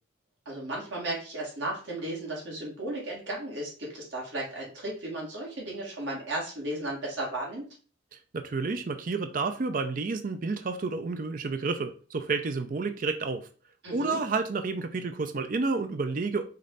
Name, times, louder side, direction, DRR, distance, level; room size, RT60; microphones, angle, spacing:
voice 1, 0.5-7.6 13.8-14.2, right 1 dB, 85° right, 2.0 m, -35 dB
voice 2, 8.1-13.5 13.9-16.5, right 4 dB, 45° right, 0.5 m, -30 dB
5.3 x 2.6 x 3.9 m
head